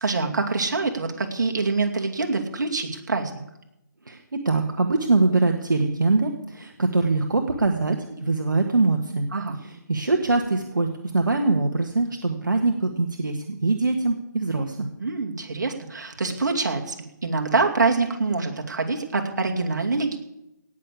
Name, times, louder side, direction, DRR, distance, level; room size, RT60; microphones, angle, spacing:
voice 1, 0.0-3.3 9.3-9.6 15.0-17.0 17.2-20.2, right 3 dB, 65° right, 2 dB, 2.5 m, -25 dB
voice 2, 4.0-9.3 9.6-14.9, right 3 dB, 80° right, 4 dB, 1.5 m, -23 dB
17.5 x 6.6 x 8.5 m, 0.87 s
figure-of-eight pair, 150°, 10 cm